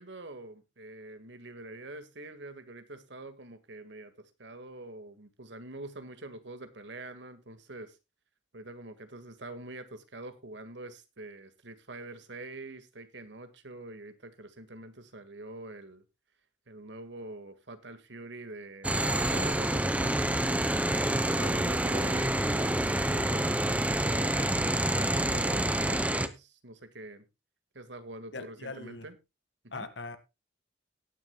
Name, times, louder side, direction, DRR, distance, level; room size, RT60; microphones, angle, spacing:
voice 1, 0.0-8.0 8.5-16.0 16.7-20.7 21.3-27.2 27.7-29.2 29.6-29.9, right 2 dB, 75° right, 1.8 m, -45 dB
sound 1, 18.8-26.3, right 1 dB, 5° right, 0.7 m, -27 dB
voice 2, 28.3-29.1 29.7-30.2, left 3 dB, 75° left, 1.8 m, -40 dB
18.5 x 9.9 x 2.2 m
head